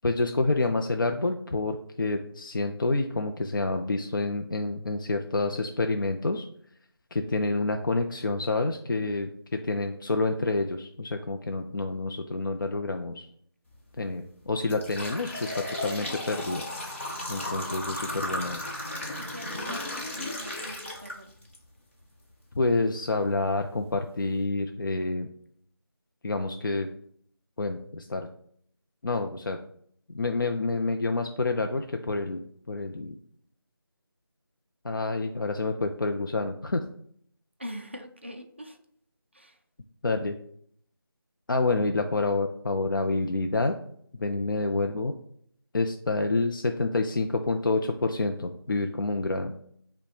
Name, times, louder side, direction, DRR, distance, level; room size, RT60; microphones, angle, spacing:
voice 1, 0.0-6.5 7.1-13.3 14.0-16.6 17.3-18.6 22.6-25.3 26.2-26.9 27.6-28.3 29.0-29.6 30.1-32.4 32.7-33.1 34.8-36.8 40.0-40.4 41.5-43.8 44.2-45.1 45.7-49.5, left 3 dB, 55° left, 5 dB, 0.4 m, -28 dB
sound 1, 13.7-13.9 14.4-21.6 22.0-22.1 23.0-23.1 23.6-23.7 24.1-24.3, left 1 dB, 30° left, 0.9 m, -35 dB
voice 2, 19.2-21.3 37.6-38.8 39.3-39.6, equal, 30° right, 5 dB, 0.3 m, -43 dB
5.2 x 2.1 x 4.7 m, 0.66 s
figure-of-eight pair, 170°, 13 cm